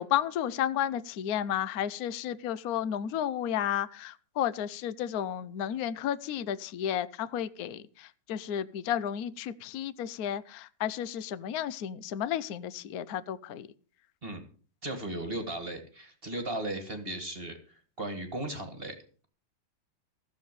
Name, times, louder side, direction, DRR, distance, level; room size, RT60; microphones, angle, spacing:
voice 1, 0.0-13.7, left 10 dB, 60° left, 16 dB, 1.1 m, -32 dB
voice 2, 14.8-19.0, right 1 dB, 30° right, 6 dB, 2.0 m, -36 dB
15.5 x 7.4 x 6.8 m, 0.41 s
omnidirectional pair, 2.1 m